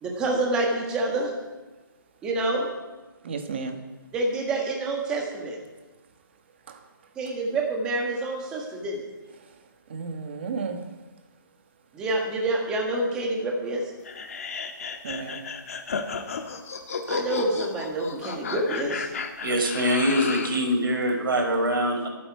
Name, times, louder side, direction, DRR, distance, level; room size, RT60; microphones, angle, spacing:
voice 1, 0.0-1.3 2.2-2.7 4.1-5.6 7.1-9.0 11.9-13.9 17.1-19.1, right 2 dB, 5° right, 0 dB, 1.5 m, -27 dB
voice 2, 3.2-3.8 6.7-6.8 9.9-10.9 15.0-15.5, right 5 dB, 30° right, 6 dB, 1.3 m, -33 dB
sound 1, 14.0-20.6, left 5 dB, 40° left, 1.3 m, -33 dB
voice 3, 19.4-22.1, equal, 75° right, 2 dB, 5.0 m, -24 dB
24.0 x 9.2 x 4.8 m, 1.1 s
hypercardioid pair, 180°, 12 cm